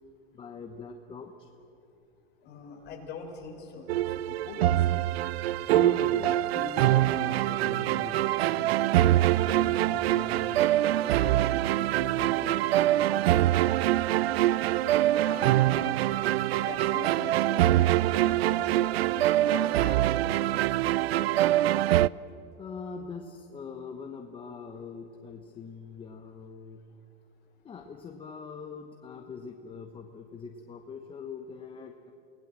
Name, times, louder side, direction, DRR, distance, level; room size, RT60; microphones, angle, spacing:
voice 1, 0.3-1.5 5.7-10.6 11.0-12.6 13.1-14.1 22.6-26.8 27.6-32.1, left 5 dB, 15° left, 4 dB, 1.1 m, -42 dB
voice 2, 2.4-5.1 15.3-20.6, left 4 dB, 35° left, 0 dB, 5.2 m, -43 dB
sound 1, 3.9-22.1, right 14 dB, 90° right, 0.5 m, -24 dB
29.0 x 19.0 x 7.6 m, 2.9 s
supercardioid pair, 145°, 30 cm